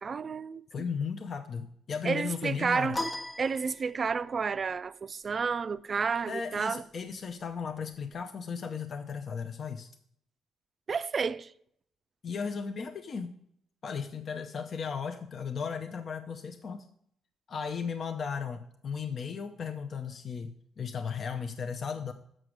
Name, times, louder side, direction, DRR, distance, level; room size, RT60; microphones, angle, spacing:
voice 1, 0.0-0.8 2.0-3.1 3.4-6.8 10.9-11.5, right 5 dB, 40° right, 0.4 m, -31 dB
voice 2, 0.7-3.0 6.3-9.9 12.2-13.3 13.8-16.9 17.5-22.1, left 6 dB, 50° left, 0.6 m, -36 dB
sound 1, 2.9-4.3, left 1 dB, 15° left, 1.0 m, -37 dB
6.5 x 6.1 x 6.2 m
cardioid pair, 90°, 0 cm